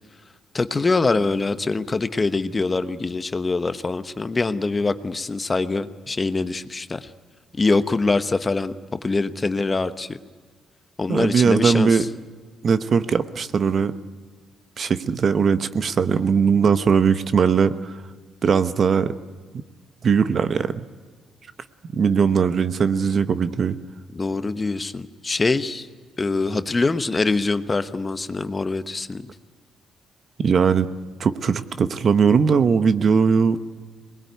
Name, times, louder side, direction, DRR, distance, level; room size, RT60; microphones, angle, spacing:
voice 1, 0.5-7.1 7.6-8.7 9.0-10.2 11.0-12.1 24.1-25.9 26.2-29.3, left 3 dB, 25° left, 11 dB, 1.0 m, -24 dB
voice 2, 11.1-12.1 12.6-13.9 14.8-17.9 18.4-19.1 20.0-20.8 21.9-23.8 30.4-30.9 31.2-33.6, right 6 dB, 50° right, 12 dB, 1.0 m, -19 dB
22.0 x 20.0 x 9.4 m, 1.5 s
cardioid pair, 90°, 0 cm